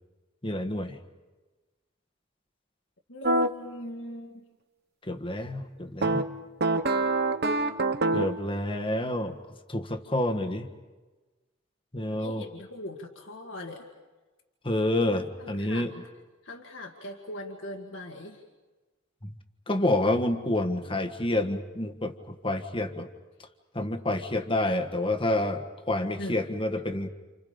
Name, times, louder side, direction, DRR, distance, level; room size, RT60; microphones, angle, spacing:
voice 1, 0.4-1.0 5.1-6.4 8.1-9.4 9.7-10.7 11.9-12.4 14.6-15.9 19.2-19.3 19.7-23.1 23.7-27.1, left 1 dB, 25° left, 5 dB, 1.6 m, -28 dB
voice 2, 3.1-4.4 12.1-13.9 15.4-16.0 16.4-18.4 26.2-26.4, left 1 dB, 60° left, 1 dB, 2.1 m, -40 dB
sound 1, 3.2-3.5 6.0-8.4, right 2 dB, 50° right, 1.1 m, -25 dB
29.5 x 29.5 x 5.2 m, 1.2 s
head